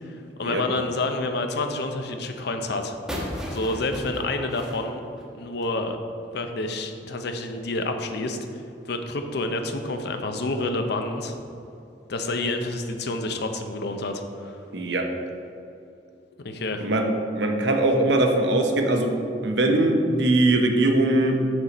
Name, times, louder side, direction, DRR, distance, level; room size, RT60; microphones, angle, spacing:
voice 1, 0.0-3.0 3.5-5.0 5.3-6.0 6.3-8.4 8.9-11.3 12.1-14.6 16.4-16.9, left 2 dB, 65° left, 6 dB, 0.6 m, -28 dB
sound 1, 3.1-5.8, equal, 5° right, 1.1 m, -35 dB
voice 2, 14.7-15.1 16.8-17.1 17.3-19.1 19.4-21.4, right 2 dB, 70° right, 4 dB, 0.8 m, -21 dB
6.5 x 6.2 x 4.1 m, 2.6 s
head